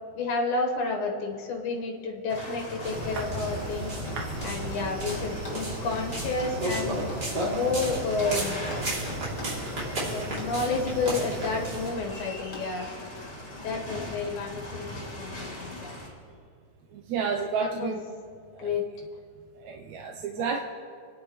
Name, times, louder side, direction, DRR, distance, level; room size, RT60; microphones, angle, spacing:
voice 1, 0.1-3.9 4.4-7.0 7.4-8.6 10.0-12.9 13.6-16.0 17.6-18.0 18.6-18.8 20.3-20.5, left 3 dB, 85° left, 0 dB, 2.9 m, -30 dB
sound 1, 2.3-16.1, left 1 dB, 55° left, 4.4 m, -40 dB
sound 2, 2.8-11.9, right 1 dB, 35° right, 3.3 m, -33 dB
sound 3, 4.1-5.6 6.4-8.4 8.7-9.6 10.4-11.6 12.5-12.8, left 2 dB, 35° left, 1.6 m, -42 dB
voice 2, 4.2-4.5 16.9-18.0 18.5-18.7 19.6-20.6, right 5 dB, 75° right, 1 dB, 2.0 m, -31 dB
29.5 x 10.0 x 3.1 m, 2.2 s
omnidirectional pair, 3.4 m